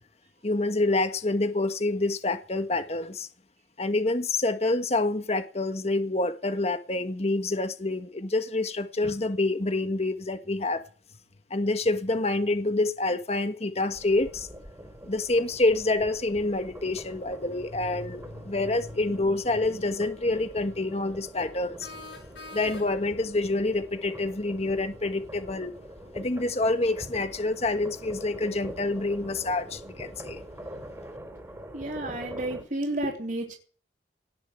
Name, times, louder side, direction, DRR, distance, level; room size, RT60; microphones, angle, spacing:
voice 1, 0.4-3.3 3.8-10.8 11.5-14.5 15.1-21.9 22.5-25.7 26.1-30.4, left 2 dB, 35° left, 1.3 m, -27 dB
sound 1, 13.9-32.6, right 1 dB, 15° right, 3.4 m, -44 dB
sound 2, 21.8-23.2, left 3 dB, 75° left, 3.0 m, -44 dB
voice 2, 31.7-33.6, right 1 dB, 45° right, 3.5 m, -31 dB
18.5 x 6.9 x 8.1 m
head